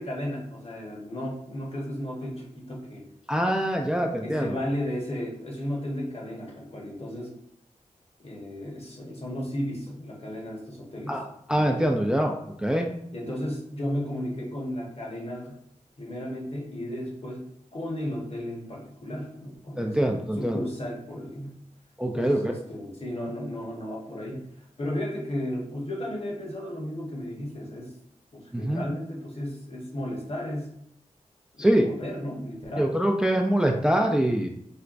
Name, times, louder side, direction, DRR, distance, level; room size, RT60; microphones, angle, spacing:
voice 1, 0.0-3.1 4.2-7.3 8.2-11.2 13.1-15.6 16.0-17.5 17.7-21.6 22.1-24.5 24.8-27.9 28.3-30.7 31.5-32.9, left 1 dB, 45° left, -2 dB, 1.0 m, -34 dB
voice 2, 3.3-4.5 11.1-11.2 11.5-12.3 12.6-12.9 19.8-20.6 22.0-22.5 28.5-28.8 31.6-31.9 32.8-34.5, right 1 dB, 5° right, 2 dB, 0.3 m, -24 dB
4.4 x 2.1 x 2.5 m, 0.72 s
cardioid pair, 50°, 14 cm